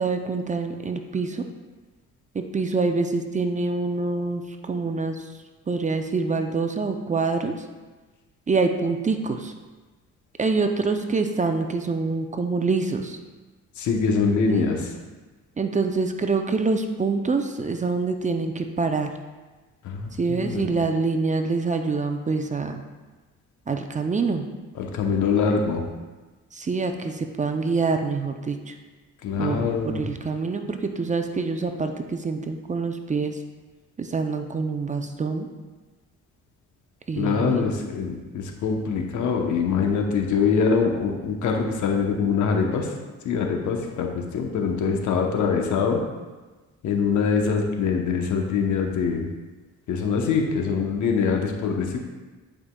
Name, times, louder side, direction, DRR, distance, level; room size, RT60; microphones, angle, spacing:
voice 1, 0.0-1.5 2.3-5.2 5.7-7.6 8.5-9.5 10.4-13.2 14.5-14.7 15.6-19.1 20.2-22.8 23.7-24.5 26.5-28.7 29.4-33.4 34.0-35.5 37.1-37.7, right 4 dB, 25° right, 6 dB, 0.5 m, -26 dB
voice 2, 13.8-14.8 19.8-20.6 24.7-25.8 29.2-30.0 37.1-42.9 43.2-46.0 46.8-49.3 49.9-52.0, left 5 dB, 75° left, 2 dB, 0.9 m, -24 dB
9.6 x 5.0 x 2.3 m, 1.3 s
cardioid pair, 90°, 30 cm